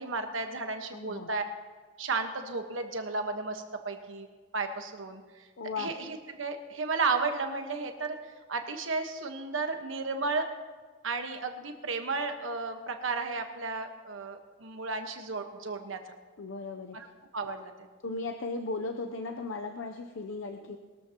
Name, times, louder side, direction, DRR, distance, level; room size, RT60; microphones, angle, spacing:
voice 1, 0.0-1.4 2.0-4.3 4.5-5.2 5.8-10.5 11.0-16.0 16.9-17.1 17.3-17.7, right 4 dB, 80° right, 5 dB, 1.3 m, -33 dB
voice 2, 0.9-1.3 5.6-5.9 16.4-17.0 18.0-20.8, left 3 dB, 85° left, 4 dB, 0.7 m, -36 dB
21.0 x 13.5 x 3.0 m, 1.4 s
head